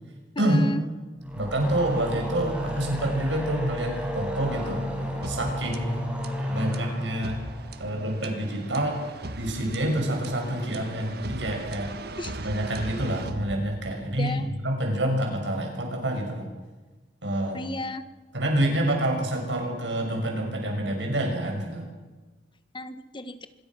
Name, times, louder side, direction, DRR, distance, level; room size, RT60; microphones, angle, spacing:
voice 1, 0.3-0.8 12.2-12.4 14.2-14.5 17.5-18.0 22.7-23.5, left 1 dB, 30° left, 11 dB, 1.5 m, -33 dB
sound 1, 1.2-8.5, equal, 10° right, 6.8 m, -33 dB
voice 2, 1.3-4.8 5.2-6.0 6.5-7.4 7.8-9.0 9.4-11.9 12.4-16.5 17.2-17.6 18.3-21.9, right 1 dB, 85° right, 2 dB, 6.5 m, -27 dB
sound 2, 5.2-14.2, right 2 dB, 60° right, 1.6 m, -39 dB
26.0 x 22.0 x 6.2 m, 1.3 s
head